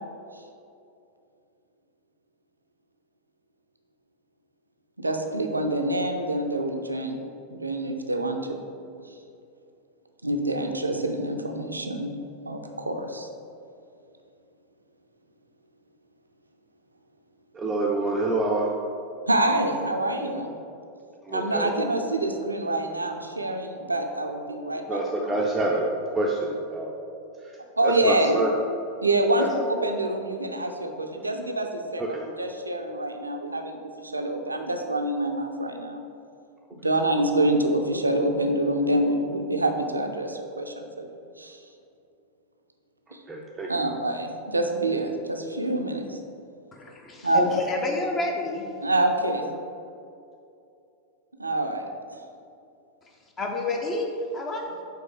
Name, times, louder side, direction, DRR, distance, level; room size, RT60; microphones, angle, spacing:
voice 1, 5.0-7.2 7.5-8.6 10.2-12.1 12.4-13.3 19.3-20.5 21.3-25.0 25.3-25.4 27.8-28.4 29.0-36.0 36.8-41.6 43.1-43.2 43.7-46.2 47.2-47.5 48.8-49.5 51.4-51.8, right 1 dB, 80° right, 5 dB, 0.5 m, -26 dB
voice 2, 17.5-18.7 21.2-21.7 24.9-25.8 26.1-26.9 27.4-27.6 27.8-28.5 29.4-29.5 32.0-32.1 43.3-43.7, right 2 dB, 15° right, -2 dB, 0.5 m, -26 dB
voice 3, 46.7-48.7 53.4-54.7, left 2 dB, 25° left, 1 dB, 0.8 m, -29 dB
5.4 x 3.8 x 4.9 m, 2.6 s
figure-of-eight pair, 90°, 0 cm